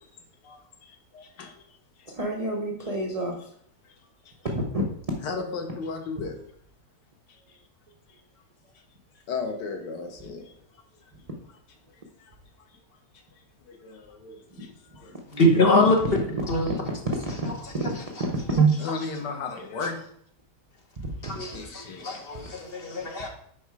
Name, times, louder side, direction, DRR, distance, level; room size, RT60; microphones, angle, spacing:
voice 1, 0.9-1.5 5.2-6.3 9.3-10.4 13.7-14.7 15.0-15.1 18.8-20.0 21.5-22.1, left 4 dB, 85° left, 4 dB, 1.6 m, -34 dB
voice 2, 2.1-3.5 4.4-4.9 14.5-15.2 16.4-18.7 21.0-22.8, right 3 dB, 45° right, -1 dB, 0.5 m, -29 dB
voice 3, 15.3-15.9 16.5-16.7 21.2-23.3, left 1 dB, 40° left, 1 dB, 1.1 m, -23 dB
5.2 x 4.7 x 4.7 m, 0.66 s
omnidirectional pair, 1.8 m